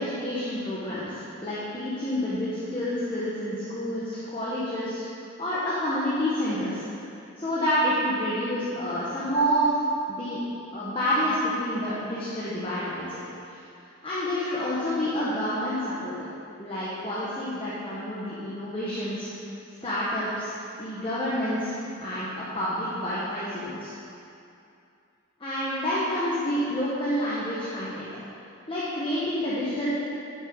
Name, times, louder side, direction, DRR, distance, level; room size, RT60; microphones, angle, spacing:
voice 1, 0.0-5.0 5.4-6.9 7.4-9.8 10.1-10.4 10.7-13.2 13.5-13.6 14.0-16.1 16.6-19.3 19.8-23.9 25.4-28.1 28.7-30.0, equal, 25° left, -10 dB, 1.3 m, -28 dB
10.5 x 6.3 x 5.3 m, 2.6 s
head